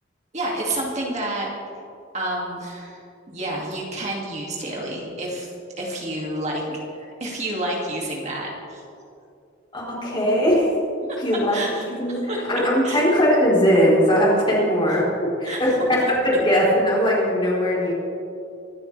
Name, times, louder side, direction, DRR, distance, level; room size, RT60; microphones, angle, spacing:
voice 1, 0.3-1.5 2.1-3.0 3.3-5.5 5.8-8.8 11.1-11.2 11.5-12.5 12.8-13.0 15.4-15.9, right 1 dB, 35° right, -3 dB, 2.4 m, -29 dB
voice 2, 9.7-10.7 11.2-11.6 12.0-17.9, equal, 25° left, -5 dB, 4.0 m, -20 dB
25.0 x 12.5 x 3.4 m, 2.6 s
head